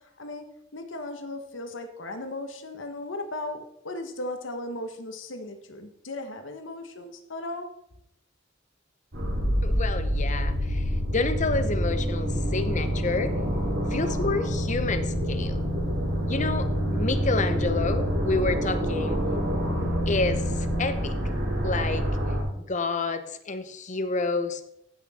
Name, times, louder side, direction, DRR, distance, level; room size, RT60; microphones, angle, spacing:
voice 1, 0.7-7.7, left 2 dB, 80° left, 7 dB, 1.3 m, -36 dB
sound 1, 9.1-22.4, equal, 90° right, 4.1 m, -27 dB
voice 2, 9.6-13.3 13.9-15.6 16.3-19.2 20.1-21.2 21.6-22.1 22.6-24.6, left 3 dB, 40° left, 9 dB, 0.9 m, -29 dB
15.0 x 6.0 x 4.3 m, 0.78 s
head